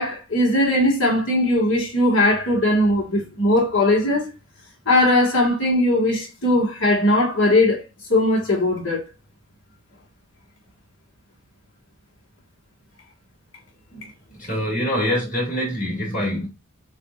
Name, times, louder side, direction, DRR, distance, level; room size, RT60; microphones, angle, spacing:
voice 1, 0.0-4.3 4.9-7.8 8.1-9.0, left 1 dB, 60° left, 1.9 m, -19 dB
voice 2, 14.3-16.5, equal, 35° left, 2.6 m, -24 dB
7.2 x 2.7 x 2.5 m
head